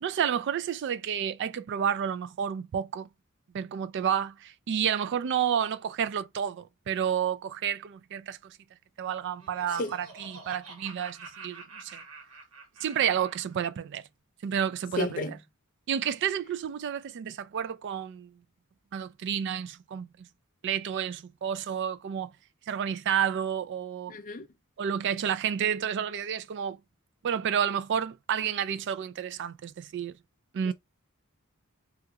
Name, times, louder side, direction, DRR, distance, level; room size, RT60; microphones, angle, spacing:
voice 1, 0.0-3.1 3.5-8.6 9.0-12.0 12.8-14.0 14.4-15.2 15.9-18.3 18.9-20.3 20.6-22.3 22.7-24.2 24.8-26.8 27.2-30.1 30.5-30.7, right 8 dB, 55° right, 0.3 m, -30 dB
Laughter, 9.1-13.6, right 3 dB, 85° right, 1.3 m, -47 dB
voice 2, 15.0-15.4 24.1-24.5 30.6-30.7, left 2 dB, 40° left, 0.6 m, -32 dB
3.5 x 2.3 x 2.8 m
head